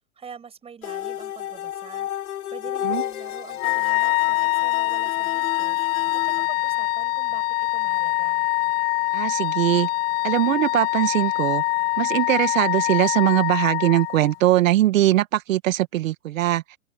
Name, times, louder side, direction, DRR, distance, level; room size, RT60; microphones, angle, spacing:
voice 1, 0.2-2.1 2.5-5.8 6.2-8.5, right 6 dB, 15° right, 7.0 m, -44 dB
sound 1, 0.8-6.5, left 12 dB, 80° left, 6.1 m, -32 dB
Wind instrument woodwind instrument, 3.6-14.4, left 19 dB, 40° left, 1.5 m, -24 dB
voice 2, 9.1-9.9 10.2-11.6 12.0-16.6, right 14 dB, 65° right, 2.0 m, -21 dB
open air
hypercardioid pair, 155°, 43 cm